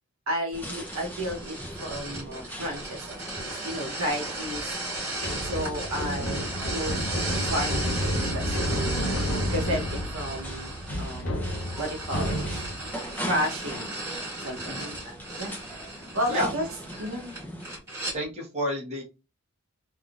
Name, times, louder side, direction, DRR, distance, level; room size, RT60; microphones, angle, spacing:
voice 1, 0.3-4.7 5.4-6.9 7.3-11.4 11.8-12.6 13.2-13.9 14.4-14.9 15.4-15.5 16.1-16.6 17.0-17.2, equal, 65° right, 0 dB, 0.9 m, -32 dB
sound 1, 0.5-17.8, equal, 10° left, 0.6 m, -41 dB
sound 2, 0.7-18.2, right 2 dB, 10° right, 1.7 m, -36 dB
sound 3, 5.2-12.9, equal, 55° left, 0.7 m, -30 dB
voice 2, 18.1-19.0, equal, 30° right, -3 dB, 1.1 m, -31 dB
3.4 x 2.6 x 2.4 m, 0.28 s
head